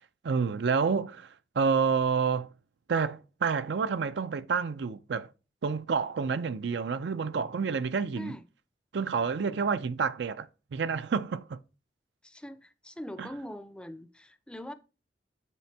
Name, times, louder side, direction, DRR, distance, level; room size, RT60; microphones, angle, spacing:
voice 1, 0.2-2.5 2.9-5.3 5.6-8.3 8.9-11.6 13.2-13.3, right 5 dB, 75° right, 0.4 m, -29 dB
voice 2, 12.2-14.7, equal, 5° left, 0.5 m, -42 dB
8.4 x 4.2 x 4.6 m
head